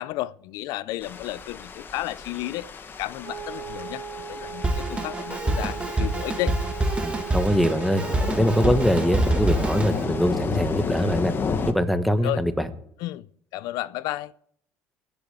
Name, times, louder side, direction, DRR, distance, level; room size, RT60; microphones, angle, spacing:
voice 1, 0.0-2.7 3.0-6.6 12.2-12.4 13.0-13.3 13.5-14.3, left 16 dB, 75° left, 0.5 m, -32 dB
sound 1, 1.0-11.7, left 5 dB, 35° left, 1.4 m, -32 dB
Wind instrument woodwind instrument, 3.2-10.7, right 7 dB, 55° right, 1.3 m, -38 dB
Drum kit, 4.6-10.0, right 2 dB, 15° right, 1.6 m, -26 dB
voice 2, 7.0-8.0 8.4-11.3 11.7-12.7, equal, ahead, 1.3 m, -23 dB
18.5 x 6.9 x 8.1 m
cardioid pair, 110°, 6 cm